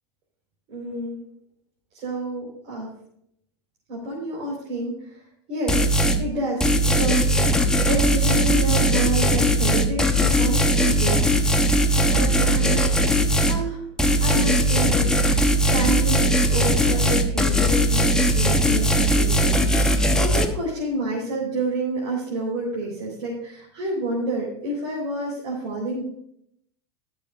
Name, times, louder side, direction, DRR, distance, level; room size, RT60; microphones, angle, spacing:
voice 1, 0.7-1.2 1.9-2.9 3.9-5.2 5.5-7.5 7.9-11.3 11.9-13.1 13.5-13.8 14.2-26.0, right 1 dB, 50° right, -4 dB, 4.3 m, -29 dB
sound 1, 5.7-6.2 6.6-13.6 14.0-20.5, equal, 5° left, 1.1 m, -19 dB
21.0 x 7.1 x 2.5 m, 0.72 s
supercardioid pair, 120°, 14 cm